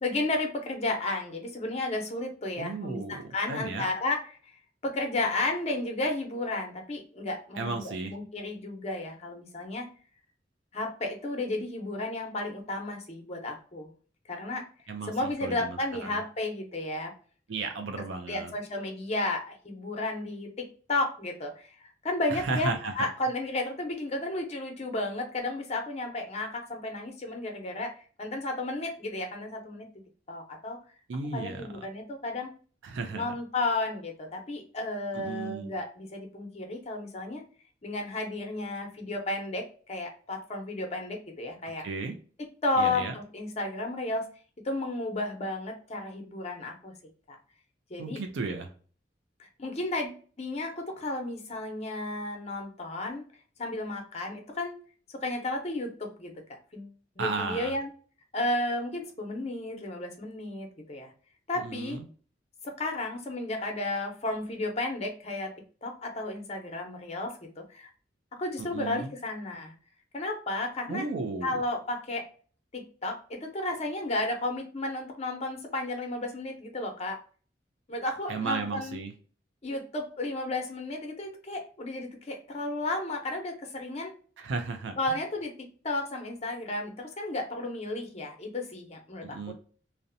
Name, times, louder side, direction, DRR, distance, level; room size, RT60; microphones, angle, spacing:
voice 1, 0.0-4.6 4.8-9.9 10.7-13.9 14.3-14.6 15.1-17.1 18.3-21.7 22.0-27.9 28.2-29.9 30.3-30.8 31.3-32.5 33.1-37.4 37.8-41.8 42.6-44.3 44.6-46.9 47.9-48.2 49.4-53.2 53.6-54.8 55.1-57.9 58.3-61.1 61.5-62.0 62.6-65.5 65.8-67.9 68.4-69.7 70.1-71.1 71.4-72.2 72.7-77.2 77.9-79.0 79.6-84.1 85.0-89.5, left 2 dB, 35° left, 3 dB, 0.6 m, -33 dB
voice 2, 2.6-3.9 7.6-8.2 14.9-16.2 17.5-18.5 22.3-22.9 31.1-31.7 32.8-33.3 35.1-35.7 41.8-42.1 42.8-43.1 48.0-48.7 57.2-57.7 61.6-62.0 68.6-69.1 70.9-71.5 78.3-79.1 84.4-85.2 89.2-89.5, right 3 dB, 90° right, 5 dB, 0.4 m, -34 dB
2.6 x 2.1 x 2.5 m, 0.41 s
head